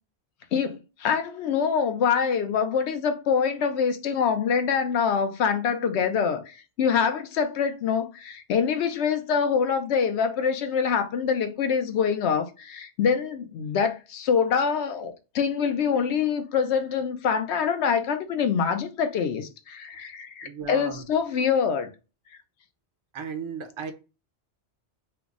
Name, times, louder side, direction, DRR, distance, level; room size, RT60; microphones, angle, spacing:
voice 1, 0.5-21.9, left 6 dB, 80° left, 0.9 m, -25 dB
voice 2, 20.4-21.0 23.1-23.9, right 6 dB, 35° right, 0.5 m, -35 dB
3.3 x 2.0 x 3.6 m
omnidirectional pair, 1.1 m